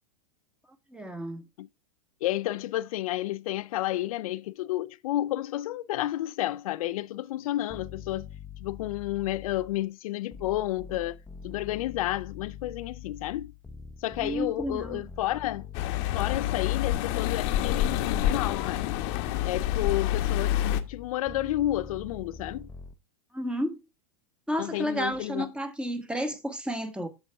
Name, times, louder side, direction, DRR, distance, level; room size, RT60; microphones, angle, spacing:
voice 1, 0.9-1.4 14.2-15.0 23.3-23.8 24.5-27.1, equal, 5° right, 1.2 m, -31 dB
voice 2, 2.2-8.3 8.6-13.5 14.0-15.7 16.1-18.9 19.4-22.7 24.6-25.5, left 15 dB, 70° left, 0.4 m, -31 dB
sound 1, 7.7-9.9 10.3-17.4 17.9-22.9, left 6 dB, 10° left, 0.7 m, -44 dB
sound 2, 15.7-20.8, left 12 dB, 55° left, 0.9 m, -27 dB
7.8 x 6.5 x 3.3 m
hypercardioid pair, 115°, 19 cm